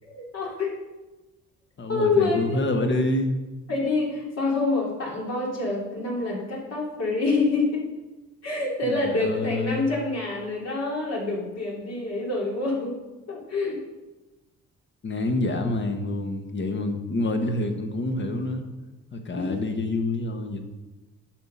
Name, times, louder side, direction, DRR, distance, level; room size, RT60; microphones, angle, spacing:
voice 1, 0.0-0.7 1.9-2.6 3.7-7.8 8.4-13.0 13.3-13.8 19.3-19.7, left 3 dB, 60° left, -3 dB, 3.1 m, -26 dB
voice 2, 1.8-3.4 8.8-9.9 15.0-18.6 19.1-20.6, left 2 dB, 40° left, 5 dB, 1.4 m, -27 dB
9.2 x 5.9 x 5.5 m, 1.1 s
cardioid pair, 90°, 30 cm